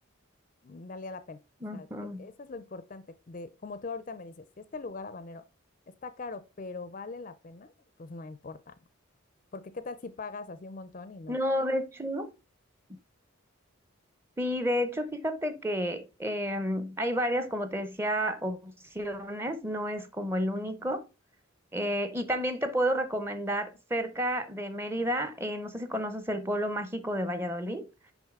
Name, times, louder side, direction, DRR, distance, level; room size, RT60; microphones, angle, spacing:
voice 1, 0.6-1.4 1.7-1.9 2.2-5.4 5.9-7.7 8.0-8.7 9.5-11.4, left 3 dB, 40° left, 0.4 m, -41 dB
voice 2, 1.6-2.3 11.3-12.3 14.4-21.0 21.7-27.8, equal, 10° right, 0.6 m, -31 dB
6.3 x 5.1 x 3.6 m
head